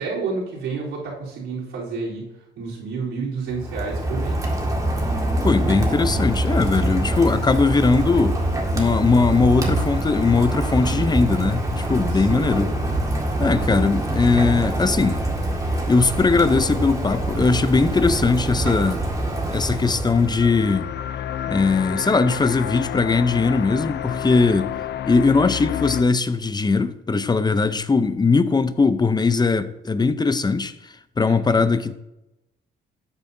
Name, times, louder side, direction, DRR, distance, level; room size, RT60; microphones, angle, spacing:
voice 1, 0.0-2.3 2.6-4.4 12.1-12.5 31.2-31.6, right 4 dB, 85° right, 3.7 m, -30 dB
Rain, 3.5-20.8, right 1 dB, 15° right, 1.9 m, -25 dB
voice 2, 5.4-8.4 8.7-12.7 13.4-15.2 15.9-19.0 19.5-20.9 21.5-24.7 25.1-31.9, left 4 dB, 20° left, 0.7 m, -20 dB
sound 1, 19.9-26.0, left 10 dB, 60° left, 0.6 m, -30 dB
12.5 x 8.4 x 2.7 m
cardioid pair, 90°, 20 cm